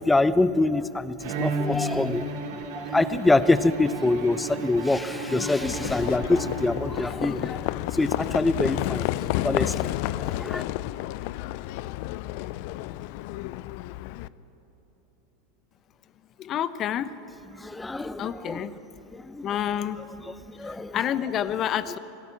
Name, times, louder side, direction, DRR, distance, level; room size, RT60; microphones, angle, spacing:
voice 1, 0.0-9.1 9.4-10.6 17.5-18.7 19.1-19.5 20.3-21.0, left 2 dB, 10° left, 15 dB, 0.8 m, -25 dB
Bowed string instrument, 1.2-7.2, right 2 dB, 60° right, 3.6 m, -33 dB
Livestock farm animals working animals, 5.6-14.3, left 16 dB, 55° left, 0.5 m, -31 dB
voice 2, 16.4-17.1 18.2-18.7 19.4-20.0 20.6-22.0, left 10 dB, 40° left, 14 dB, 0.9 m, -28 dB
26.0 x 17.5 x 7.2 m, 3.0 s
figure-of-eight pair, 85°, 0 cm